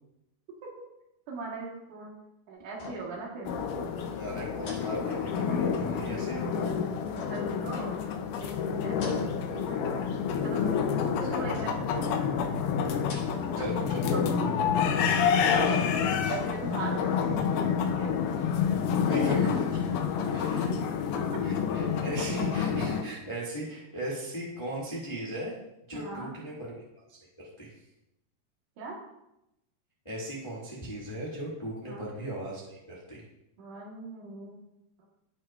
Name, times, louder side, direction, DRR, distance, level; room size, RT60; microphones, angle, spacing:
voice 1, 1.3-2.1 2.5-3.5 7.1-8.0 8.3-9.9 10.4-12.1 14.1-14.7 16.3-18.1 20.5-20.9 21.3-21.4 25.9-26.4 28.8-29.0 31.8-32.0 33.6-34.6, right 3 dB, 60° right, -2 dB, 2.6 m, -39 dB
sound 1, 2.7-3.3 3.6-3.7 4.6-5.7 7.1-8.3 8.8-9.6 9.9-10.5 11.5-12.0 12.9-13.7 14.0-14.1 15.2-16.4 16.8-16.9, left 3 dB, 65° left, 4.2 m, -46 dB
sound 2, 3.4-23.0, left 7 dB, 85° left, 1.8 m, -28 dB
voice 2, 4.2-6.7 13.5-14.0 15.6-16.1 19.0-20.7 21.4-25.5 25.9-26.8 27.4-27.7 30.0-33.2, right 1 dB, 45° left, -5 dB, 0.3 m, -37 dB
16.5 x 5.8 x 2.4 m, 0.88 s
omnidirectional pair, 4.5 m